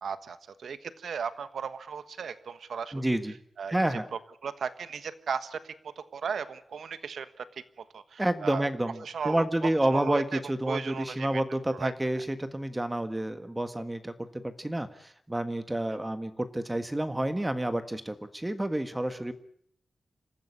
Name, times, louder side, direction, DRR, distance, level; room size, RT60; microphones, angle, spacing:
voice 1, 0.0-2.9 3.6-7.4 7.8-8.7 9.0-10.4 10.7-11.4 11.7-11.9, right 6 dB, 90° right, 13 dB, 1.3 m, -36 dB
voice 2, 2.9-3.4 3.7-4.1 8.2-19.3, right 1 dB, 15° right, 10 dB, 1.5 m, -29 dB
26.5 x 15.0 x 9.8 m, 0.66 s
wide cardioid pair, 100°, 0 cm